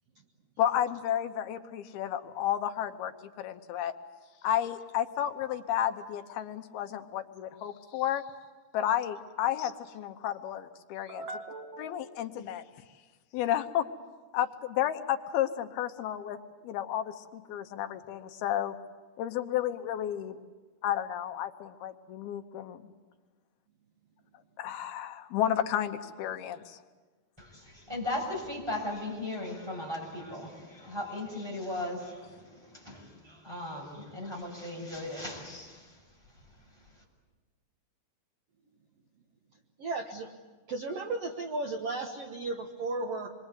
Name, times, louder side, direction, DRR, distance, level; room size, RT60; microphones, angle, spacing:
voice 1, 0.6-3.1 3.4-3.9 4.4-8.2 8.7-11.3 11.8-12.6 13.3-13.9 14.3-16.4 16.6-18.8 19.2-20.4 20.8-22.9 24.6-26.8, left 11 dB, 85° left, 8 dB, 3.0 m, -32 dB
voice 2, 11.1-12.2 39.8-40.3 40.7-43.3, right 3 dB, 55° right, 4 dB, 1.9 m, -35 dB
voice 3, 27.4-36.0, left 1 dB, 5° right, -1 dB, 6.3 m, -37 dB
26.5 x 23.0 x 8.3 m, 1.3 s
omnidirectional pair, 4.3 m